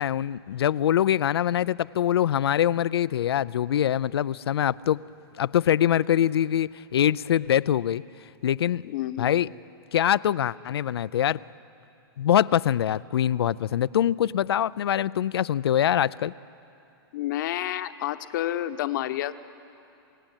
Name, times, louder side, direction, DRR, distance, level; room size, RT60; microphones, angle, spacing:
voice 1, 0.0-5.0 5.4-8.0 8.4-8.8 9.2-9.5 9.9-11.4 12.2-16.3, left 10 dB, 90° left, 19 dB, 0.5 m, -24 dB
voice 2, 8.8-9.3 17.1-19.3, left 13 dB, 55° left, 10 dB, 1.0 m, -29 dB
28.0 x 17.5 x 9.0 m, 2.7 s
hypercardioid pair, 150°, 13 cm